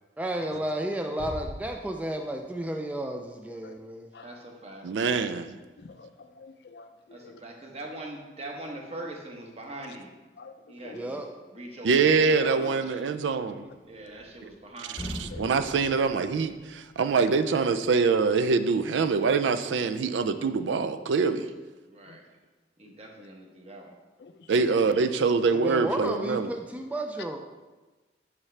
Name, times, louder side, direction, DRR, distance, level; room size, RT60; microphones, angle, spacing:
voice 1, 0.2-4.1 10.9-11.3 13.5-13.6 25.5-27.4, right 1 dB, 10° right, 3 dB, 0.3 m, -32 dB
Bass drum, 1.2-2.6, equal, 55° right, 1.5 m, -41 dB
voice 2, 4.2-4.9 7.1-10.1 10.7-11.2 11.5-13.1 13.8-15.1 21.9-22.2 22.8-24.0, right 1 dB, 35° right, 1 dB, 1.0 m, -42 dB
voice 3, 4.8-5.6 11.8-13.7 15.2-21.5 24.5-26.5, right 4 dB, 90° right, 10 dB, 0.4 m, -24 dB
voice 4, 5.8-7.4 9.9-10.0 10.4-10.5 10.8-11.0 15.3-15.5 17.0-17.3 22.1-22.2 22.9-23.0 24.2-24.8, left 4 dB, 65° left, 8 dB, 0.5 m, -48 dB
sound 1, 13.8-14.6 14.9-17.0, equal, 25° left, 0.8 m, -40 dB
7.3 x 5.7 x 3.3 m, 1.2 s
head